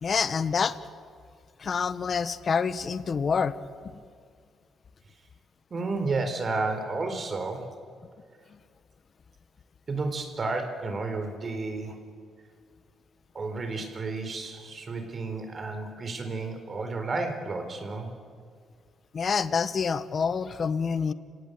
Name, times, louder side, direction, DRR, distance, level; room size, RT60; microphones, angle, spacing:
voice 1, 0.0-0.8 1.6-3.5 3.8-4.0 8.5-8.6 19.1-21.1, left 6 dB, 45° left, 13 dB, 1.2 m, -27 dB
voice 2, 5.7-7.7 9.9-12.0 13.3-18.1, right 3 dB, 40° right, 6 dB, 4.1 m, -32 dB
28.5 x 17.0 x 9.2 m, 2.1 s
cardioid pair, 90°, 0 cm